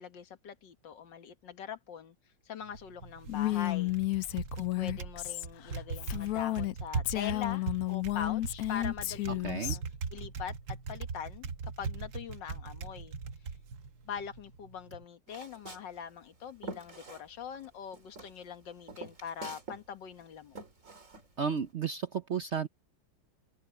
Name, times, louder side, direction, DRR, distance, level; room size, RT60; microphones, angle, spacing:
voice 1, 0.0-2.2 2.5-4.0 4.6-9.8 10.1-13.1 14.1-20.6, left 8 dB, 60° left, 1.9 m, -43 dB
Typing, 2.6-15.0, right 5 dB, 55° right, 1.5 m, -40 dB
Female speech woman speaking, 3.3-6.7 7.0-9.8, left 17 dB, 85° left, 0.8 m, -32 dB
voice 2, 9.4-9.8 21.4-22.7, right 6 dB, 75° right, 0.6 m, -33 dB
Walk footsteps, 15.3-17.7 17.9-19.9 20.1-21.7, right 2 dB, 35° right, 3.9 m, -46 dB
open air
omnidirectional pair, 2.2 m